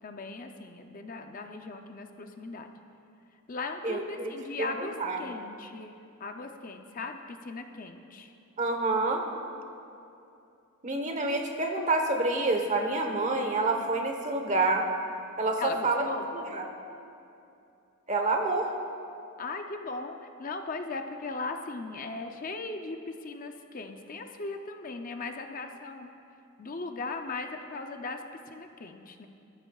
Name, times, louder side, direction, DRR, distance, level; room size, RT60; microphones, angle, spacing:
voice 1, 0.0-2.7 3.5-8.3 14.4-14.5 15.6-16.3 19.4-26.1 26.6-29.3, left 3 dB, 40° left, 5 dB, 0.5 m, -38 dB
voice 2, 3.8-4.3 4.6-5.2 8.6-9.2 10.8-14.9 15.4-16.0 16.3-16.7 18.1-18.7, right 2 dB, 30° right, 3 dB, 1.1 m, -28 dB
20.0 x 13.5 x 2.4 m, 2.7 s
head